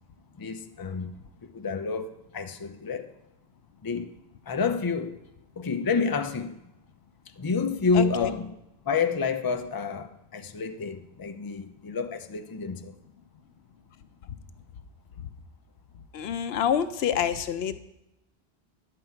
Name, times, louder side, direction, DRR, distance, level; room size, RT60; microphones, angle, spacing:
voice 1, 0.4-1.1 1.5-3.1 3.8-4.1 4.5-5.2 5.6-6.6 7.4-8.6 8.8-12.9, left 5 dB, 25° left, 7 dB, 0.5 m, -29 dB
voice 2, 7.9-8.3 16.1-17.8, left 9 dB, 80° left, 12 dB, 0.8 m, -27 dB
10.5 x 7.7 x 4.5 m, 0.87 s
omnidirectional pair, 1.0 m